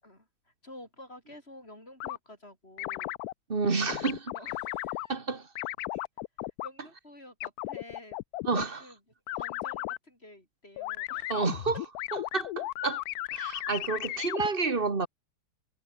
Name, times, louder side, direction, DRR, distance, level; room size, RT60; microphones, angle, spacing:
voice 1, 0.0-3.2 4.3-5.2 6.6-8.2 8.8-9.0 9.3-11.5 13.5-14.3, left 1 dB, 30° left, 7.8 m, -51 dB
sound 1, 2.0-2.2 2.8-3.3 3.9-5.1 5.6-6.7 7.4-8.6 9.3-10.0 10.8-14.5, left 16 dB, 85° left, 0.8 m, -35 dB
voice 2, 3.5-4.3 5.1-5.5 8.5-8.9 11.3-11.7 12.1-13.0 13.3-15.1, right 4 dB, 30° right, 1.9 m, -30 dB
omnidirectional pair, 2.2 m